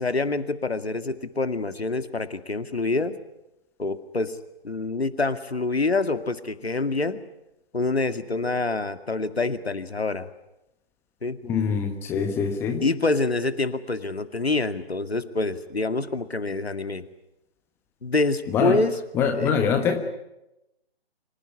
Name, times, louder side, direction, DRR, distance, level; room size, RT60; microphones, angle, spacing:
voice 1, 0.0-3.1 3.8-4.4 4.6-7.2 7.7-10.3 11.2-11.4 12.8-17.1 18.0-18.9 19.4-19.5, left 3 dB, 75° left, 9 dB, 2.2 m, -26 dB
voice 2, 11.4-12.8 18.5-18.8 19.1-20.0, left 6 dB, 5° left, 5 dB, 1.3 m, -24 dB
25.5 x 17.5 x 9.8 m, 0.92 s
figure-of-eight pair, 145°, 31 cm